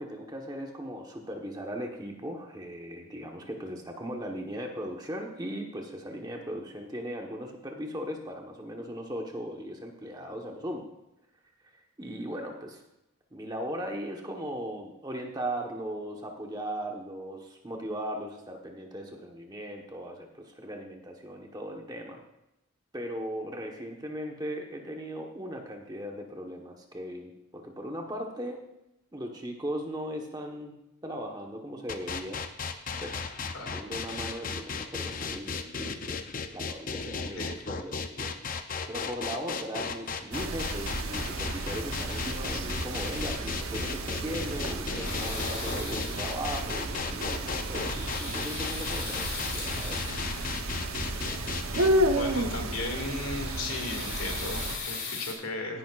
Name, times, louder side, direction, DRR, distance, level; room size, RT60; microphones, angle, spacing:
voice 1, 0.0-10.9 12.0-12.8 13.3-22.2 22.9-28.6 29.1-30.8 31.0-32.4 33.0-33.2 33.6-36.2 36.5-38.3 38.9-50.1, equal, 20° right, 1 dB, 1.2 m, -38 dB
sound 1, 31.9-51.9, left 5 dB, 40° left, 0.6 m, -35 dB
voice 2, 37.4-37.8 52.1-55.8, left 2 dB, 80° left, 3 dB, 2.3 m, -36 dB
sound 2, 40.3-54.8, right 1 dB, 85° right, 1.0 m, -32 dB
sound 3, 45.0-46.4 47.5-50.7 52.7-55.3, left 4 dB, 60° left, 3.0 m, -39 dB
16.0 x 10.5 x 2.5 m, 0.87 s
head